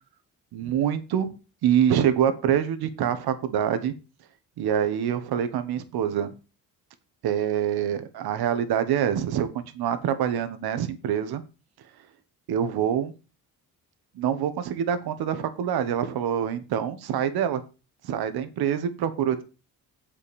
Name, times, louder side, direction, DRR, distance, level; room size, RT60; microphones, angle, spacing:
voice 1, 0.5-1.3 1.6-3.9 4.6-6.3 7.2-11.4 12.5-13.1 14.1-17.6 18.0-19.4, right 9 dB, 90° right, 10 dB, 1.3 m, -25 dB
7.6 x 5.3 x 6.9 m, 0.31 s
cardioid pair, 90°, 37 cm